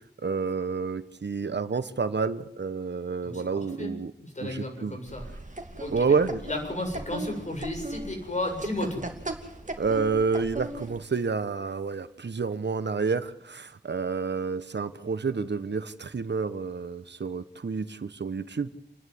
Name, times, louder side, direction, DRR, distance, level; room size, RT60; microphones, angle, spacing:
voice 1, 0.2-4.1 4.4-5.0 5.9-6.4 9.8-18.7, right 4 dB, 70° right, 12 dB, 1.3 m, -29 dB
voice 2, 3.2-5.3 5.8-6.2 6.4-9.0, left 1 dB, 40° left, 2 dB, 7.8 m, -34 dB
sound 1, 5.1-11.0, right 2 dB, 45° right, 2.8 m, -38 dB
29.5 x 11.0 x 9.7 m, 0.79 s
wide cardioid pair, 70°, 18 cm